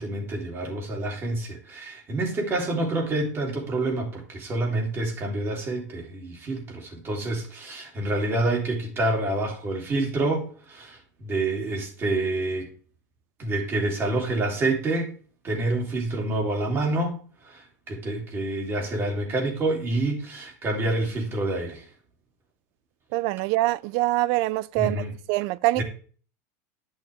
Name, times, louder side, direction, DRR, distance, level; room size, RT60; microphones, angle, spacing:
voice 1, 0.0-12.7 13.4-15.1 15.4-21.8 24.8-25.1 25.8-25.9, right 2 dB, 25° right, 2.9 m, -27 dB
voice 2, 23.1-25.0 25.3-25.8, right 18 dB, 55° right, 0.4 m, -24 dB
10.5 x 6.4 x 3.4 m
supercardioid pair, 135°, 9 cm